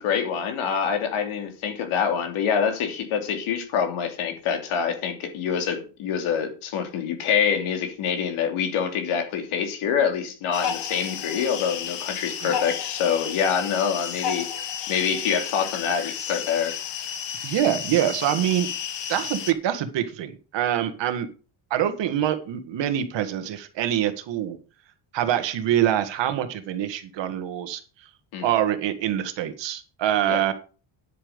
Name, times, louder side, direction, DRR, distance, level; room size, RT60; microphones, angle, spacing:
voice 1, 0.0-14.5 14.9-16.7 28.3-28.5 30.3-30.4, left 7 dB, 75° left, 2.9 m, -26 dB
sound 1, 10.5-19.5, left 8 dB, 55° left, 1.4 m, -32 dB
voice 2, 17.4-18.7 19.1-21.3 21.7-24.6 25.1-27.8 28.4-30.5, right 11 dB, 60° right, 1.8 m, -25 dB
10.0 x 8.7 x 5.2 m
cardioid pair, 170°, 49 cm